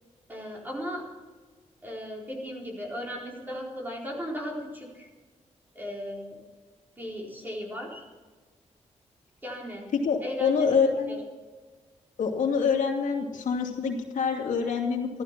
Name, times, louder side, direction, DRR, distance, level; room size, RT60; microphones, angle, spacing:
voice 1, 0.3-1.0 1.8-5.1 5.7-6.4 7.0-8.0 9.4-9.9 10.2-11.2, equal, 15° right, -2 dB, 4.1 m, -36 dB
voice 2, 9.9-11.2 12.2-15.2, left 6 dB, 90° left, 1 dB, 2.6 m, -26 dB
14.5 x 13.0 x 6.0 m, 1.4 s
wide cardioid pair, 150°, 13 cm